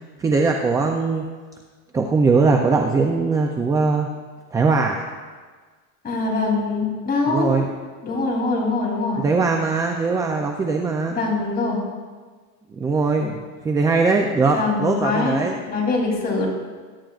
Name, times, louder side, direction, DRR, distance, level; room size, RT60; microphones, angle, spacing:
voice 1, 0.2-1.2 1.9-4.1 4.5-5.0 7.3-7.7 9.2-11.2 12.7-15.6, right 4 dB, 10° right, 2 dB, 0.4 m, -20 dB
voice 2, 6.0-7.5 8.0-9.2 11.1-11.8 14.5-16.5, left 3 dB, 20° left, -2 dB, 3.2 m, -23 dB
21.5 x 10.0 x 2.4 m, 1.5 s
supercardioid pair, 155°, 40 cm